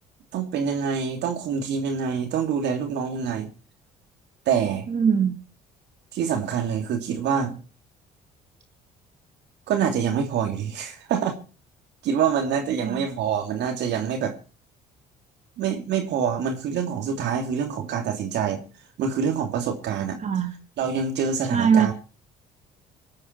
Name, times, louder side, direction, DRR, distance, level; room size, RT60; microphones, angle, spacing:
voice 1, 0.3-3.5 4.5-4.9 6.1-7.5 9.7-11.4 12.0-14.4 15.6-18.6 19.0-20.2 20.8-21.9, right 7 dB, 65° right, 4 dB, 2.8 m, -26 dB
voice 2, 4.9-5.3 12.8-13.0 20.2-20.5 21.5-21.9, right 7 dB, 40° right, 5 dB, 2.4 m, -21 dB
25.5 x 8.8 x 4.5 m, 0.36 s
hypercardioid pair, 60°, 19 cm